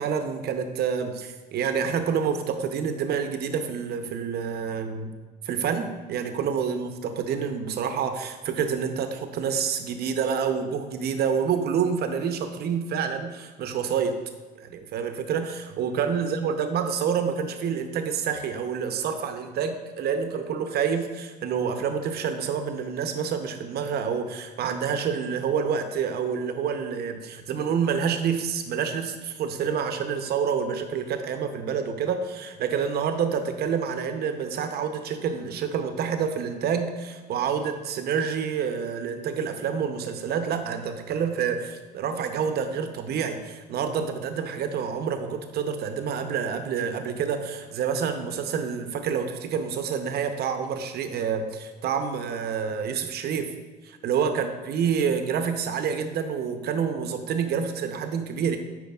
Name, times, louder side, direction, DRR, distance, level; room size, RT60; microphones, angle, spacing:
voice 1, 0.0-5.1 5.4-14.2 14.6-53.5 53.8-58.6, right 7 dB, 60° right, 7 dB, 0.7 m, -28 dB
9.1 x 4.6 x 2.3 m, 1.4 s
supercardioid pair, 75°, 18 cm